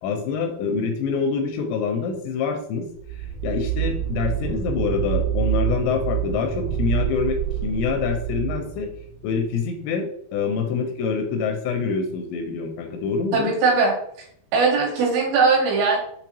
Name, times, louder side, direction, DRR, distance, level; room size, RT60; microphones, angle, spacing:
voice 1, 0.0-2.9 3.4-8.9 9.2-13.5, left 5 dB, 85° left, 4 dB, 2.6 m, -26 dB
sound 1, 2.9-9.4, right 10 dB, 45° right, 1.7 m, -27 dB
voice 2, 13.3-13.9 14.5-16.0, right 4 dB, 75° right, -3 dB, 3.3 m, -19 dB
6.9 x 2.8 x 2.7 m, 0.68 s
omnidirectional pair, 5.3 m